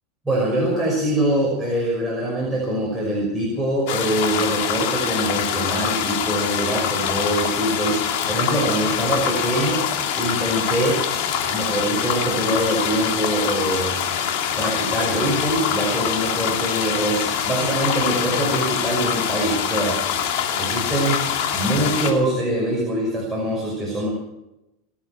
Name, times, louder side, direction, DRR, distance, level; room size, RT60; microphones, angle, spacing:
voice 1, 0.2-9.8 10.2-11.0 11.4-14.0 14.6-20.0 20.6-21.2 21.5-24.1, right 1 dB, ahead, -5 dB, 5.9 m, -23 dB
sound 1, 3.9-22.1, left 8 dB, 65° left, 2.9 m, -24 dB
26.5 x 9.1 x 6.1 m, 0.91 s
supercardioid pair, 125°, 0 cm